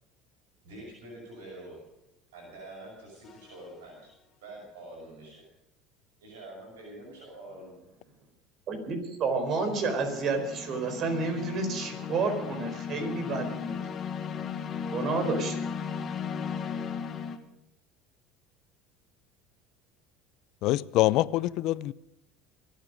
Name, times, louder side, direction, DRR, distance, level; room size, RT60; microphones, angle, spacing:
voice 1, 0.6-1.8 2.3-4.1 4.4-5.4 6.2-7.7, right 1 dB, 85° right, 6.2 m, -46 dB
sound 1, 3.3-3.6 9.5-17.4, left 6 dB, 40° left, 1.7 m, -36 dB
voice 2, 8.7-13.8 14.9-15.6, right 4 dB, 50° right, 4.3 m, -30 dB
voice 3, 20.6-21.9, left 17 dB, 65° left, 0.5 m, -25 dB
24.5 x 9.1 x 5.2 m
hypercardioid pair, 80°, 0 cm